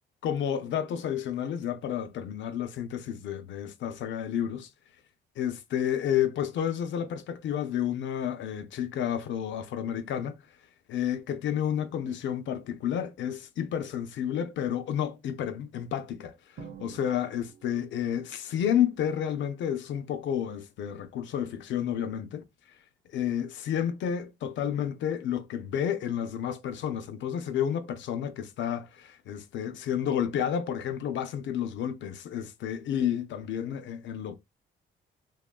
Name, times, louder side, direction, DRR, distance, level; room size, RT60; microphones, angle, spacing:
voice 1, 0.2-4.7 5.4-10.4 10.9-22.4 23.1-34.4, left 9 dB, 70° left, 0.5 m, -31 dB
Drum, 16.6-18.3, right 6 dB, 70° right, 0.7 m, -48 dB
2.7 x 2.2 x 2.2 m
cardioid pair, 90°, 20 cm